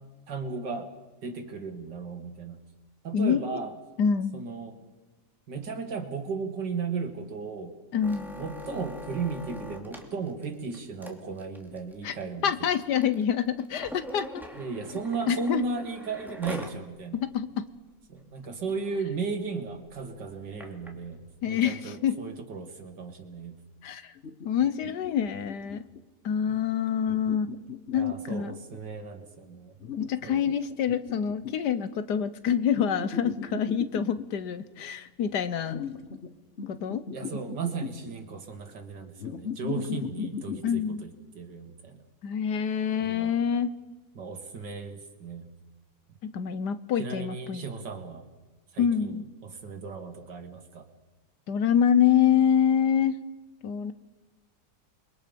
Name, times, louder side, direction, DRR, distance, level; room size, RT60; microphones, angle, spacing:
voice 1, 0.3-0.9 1.2-2.6 3.0-3.7 4.3-4.8 5.5-7.7 8.4-12.7 14.5-17.2 18.1-23.6 27.9-29.7 30.2-30.4 37.1-41.1 41.3-42.0 43.0-43.3 44.1-45.5 47.0-48.2 48.7-50.9, right 4 dB, 90° right, 5 dB, 2.7 m, -35 dB
voice 2, 3.1-3.6 4.0-4.5 7.9-8.3 12.0-12.1 12.4-14.4 15.3-15.6 17.1-17.6 21.4-22.1 23.8-24.1 24.4-25.8 26.2-27.5 27.9-28.5 30.0-35.8 36.7-37.0 40.6-41.0 42.2-43.7 46.2-47.7 48.8-49.2 51.5-53.2 53.6-53.9, left 8 dB, 75° left, 12 dB, 1.5 m, -26 dB
sound 1, 8.0-16.8 17.2-17.3 17.6-17.9 18.4-18.5 18.7-19.0 19.7-20.9 21.6-21.7, left 1 dB, ahead, 2.3 m, -43 dB
sound 2, 24.2-26.0 27.1-28.8 29.8-31.7 32.8-34.3 35.7-36.3 36.6-38.1 39.2-40.7, left 7 dB, 45° left, 1.3 m, -37 dB
28.0 x 22.0 x 5.3 m, 1.2 s
omnidirectional pair, 1.8 m